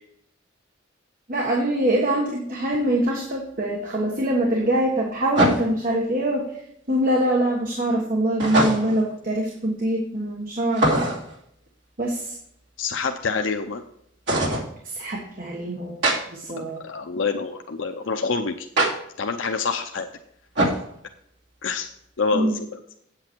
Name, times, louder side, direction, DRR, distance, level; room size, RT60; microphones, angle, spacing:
voice 1, 1.3-6.5 6.9-11.0 12.0-12.3 14.8-16.8 22.3-22.6, right 1 dB, 45° right, -1 dB, 1.5 m, -24 dB
sound 1, 2.7-2.8 5.3-5.9 8.4-9.1 10.7-11.4 14.3-14.7 16.0-16.2 18.8-18.9 20.5-20.9, right 1 dB, 65° right, 2.6 m, -21 dB
voice 2, 12.8-13.8 16.6-18.7 19.2-20.1 21.6-21.9 22.2-22.8, left 4 dB, 80° left, 5 dB, 0.7 m, -27 dB
8.5 x 8.0 x 4.5 m, 0.72 s
head